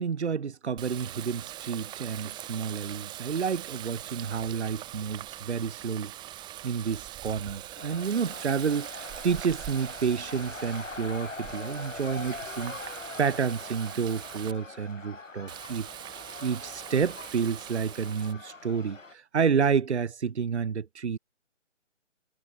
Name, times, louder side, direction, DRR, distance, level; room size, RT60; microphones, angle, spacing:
voice 1, 0.0-6.4 6.6-12.8 13.2-15.9 16.4-21.2, right 6 dB, 60° right, 1.4 m, -30 dB
Water tap faucet, 0.8-14.5 15.5-18.3, right 14 dB, 10° right, 3.8 m, -42 dB
sound 1, 7.8-19.1, left 3 dB, 85° left, 3.5 m, -43 dB
figure-of-eight pair, 150°, 38 cm